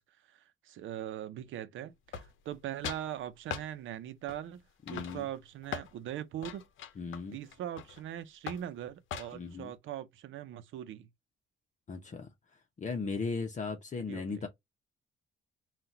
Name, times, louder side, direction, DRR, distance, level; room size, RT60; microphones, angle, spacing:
voice 1, 0.0-6.6 7.3-11.1 14.1-14.4, right 11 dB, 75° right, 0.7 m, -41 dB
sound 1, 2.1-2.6 2.8-3.1 3.5-3.7 4.3-4.6 4.9-5.9 6.4-8.0 8.5-8.7 9.1-9.5, left 8 dB, 80° left, 0.7 m, -41 dB
voice 2, 4.9-5.2 7.0-7.3 9.3-9.7 11.9-12.3 12.8-14.5, left 4 dB, 40° left, 0.9 m, -37 dB
3.9 x 2.4 x 4.3 m
cardioid pair, 90°, 20 cm